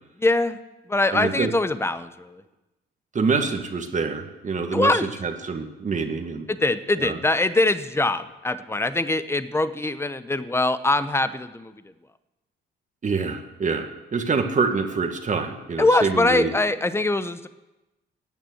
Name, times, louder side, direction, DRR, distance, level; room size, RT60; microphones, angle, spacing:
voice 1, 0.2-0.6 0.9-2.4 4.7-5.1 6.5-11.7 15.8-17.5, left 2 dB, 10° left, 13 dB, 0.9 m, -23 dB
voice 2, 1.1-1.5 3.1-6.5 7.0-7.2 13.0-16.5, right 4 dB, 40° right, 5 dB, 1.7 m, -26 dB
13.0 x 8.8 x 7.9 m, 1.0 s
cardioid pair, 90°, 20 cm